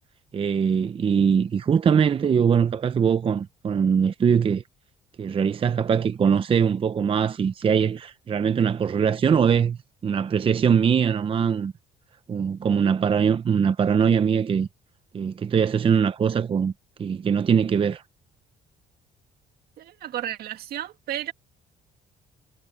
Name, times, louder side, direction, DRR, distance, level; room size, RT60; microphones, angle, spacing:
voice 1, 0.3-4.6 5.2-11.7 12.3-14.7 15.1-16.7 17.0-18.0, right 7 dB, 30° right, 0.7 m, -22 dB
voice 2, 19.8-21.3, right 12 dB, 65° right, 2.0 m, -33 dB
cardioid pair, 110°, 17 cm